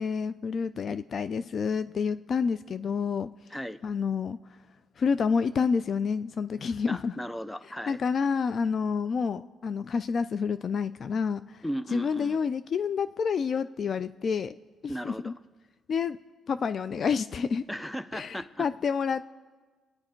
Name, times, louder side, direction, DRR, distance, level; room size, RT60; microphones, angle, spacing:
voice 1, 0.0-3.3 3.8-4.4 5.0-7.1 7.9-11.4 11.9-14.5 15.0-15.3 15.9-16.2 16.5-17.6 18.1-19.2, left 6 dB, 50° left, 13 dB, 0.4 m, -28 dB
voice 2, 6.9-8.0 11.6-12.4 14.9-15.3 17.7-18.7, equal, 5° left, 13 dB, 0.7 m, -36 dB
25.5 x 9.6 x 4.5 m, 1.4 s
cardioid pair, 90°, 0 cm